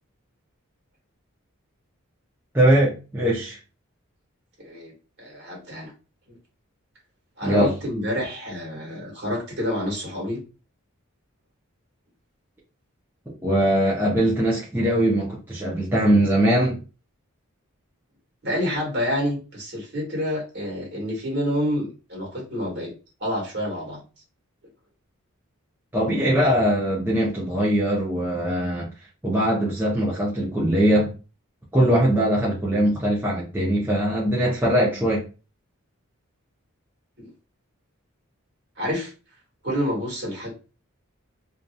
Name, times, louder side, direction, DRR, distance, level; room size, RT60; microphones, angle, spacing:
voice 1, 2.5-3.6 7.4-7.7 13.4-16.8 25.9-28.9 29.2-31.1 31.7-35.2, right 1 dB, 10° right, 0.5 m, -21 dB
voice 2, 4.6-4.9 5.2-5.9 7.4-10.4 18.4-22.9 23.2-24.0 37.2-37.3 38.8-39.1 39.6-40.5, equal, 50° right, 1.4 m, -28 dB
2.7 x 2.4 x 2.2 m
head